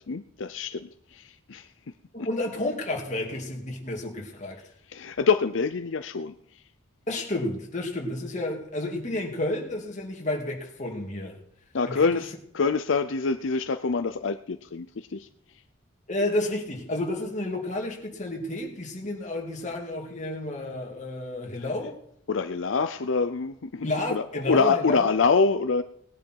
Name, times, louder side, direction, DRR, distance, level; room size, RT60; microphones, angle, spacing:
voice 1, 0.1-1.7 4.9-6.3 11.7-14.9 15.1-15.3 22.3-25.8, left 4 dB, 80° left, 0.6 m, -25 dB
voice 2, 2.1-4.6 7.1-11.4 11.9-12.2 16.1-22.0 23.8-25.1, left 1 dB, 40° left, 2.6 m, -31 dB
19.0 x 10.5 x 4.6 m
head